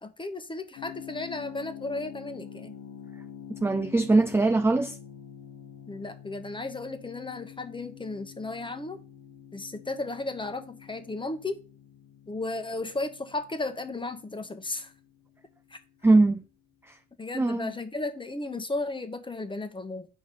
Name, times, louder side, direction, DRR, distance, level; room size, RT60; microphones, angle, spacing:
voice 1, 0.0-2.7 5.9-9.0 9.5-11.6 12.3-14.9 15.7-15.8 17.2-20.1, left 2 dB, 15° left, 1.0 m, -34 dB
sound 1, 0.8-15.5, left 9 dB, 90° left, 0.9 m, -47 dB
voice 2, 3.6-5.0 16.0-16.4 17.3-17.7, right 2 dB, 10° right, 0.4 m, -21 dB
8.2 x 5.1 x 4.1 m
cardioid pair, 90°, 30 cm